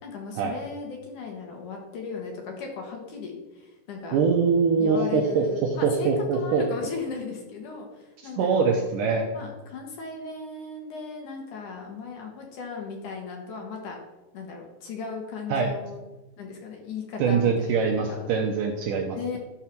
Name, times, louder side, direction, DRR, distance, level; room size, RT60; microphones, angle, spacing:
voice 1, 0.0-4.2 4.8-8.9 9.3-14.0 14.3-16.0 16.4-18.3 19.1-19.4, left 4 dB, 60° left, 1 dB, 2.6 m, -37 dB
voice 2, 4.1-5.4 5.8-6.6 8.4-9.3 15.5-15.7 17.2-19.4, right 5 dB, 80° right, 2 dB, 1.9 m, -23 dB
13.0 x 4.7 x 5.9 m, 1.1 s
omnidirectional pair, 4.8 m